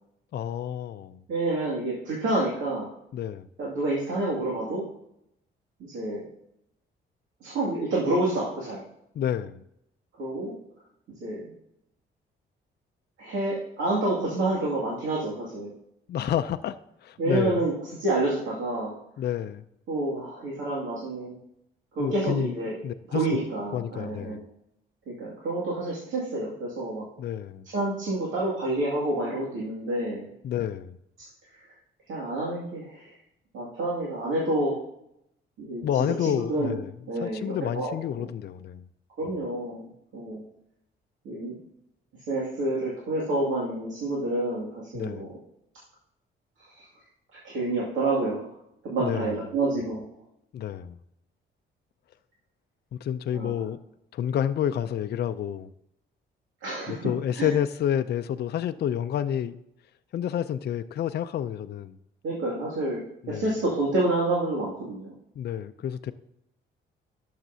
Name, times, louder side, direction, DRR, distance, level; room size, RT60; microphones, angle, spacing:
voice 1, 0.3-1.2 3.1-3.5 9.1-9.6 16.1-16.8 17.0-17.7 19.2-19.6 22.0-22.6 22.8-23.2 23.7-24.4 27.2-27.7 30.4-31.0 35.8-36.9 37.2-38.8 44.9-45.3 49.0-49.4 50.5-51.0 53.0-53.8 54.1-55.7 56.9-59.6 60.1-62.0 63.2-63.4 65.4-66.1, left 10 dB, 55° left, 0.5 m, -29 dB
voice 2, 1.3-2.9 3.6-4.8 5.8-6.2 7.4-8.8 10.2-10.5 11.2-11.4 13.2-15.7 17.2-17.7 18.0-18.9 19.9-21.3 22.0-22.7 23.1-24.4 25.1-27.1 27.7-30.3 32.1-33.1 33.5-34.7 35.6-35.8 36.2-36.7 37.1-38.0 39.2-39.8 40.1-40.4 41.2-41.6 42.3-45.4 46.7-46.8 47.4-48.5 48.8-50.1 53.3-53.7 56.6-57.0 57.3-57.5 62.2-65.1, right 2 dB, 80° right, 2.3 m, -28 dB
11.5 x 6.7 x 2.7 m
cardioid pair, 85°, 20 cm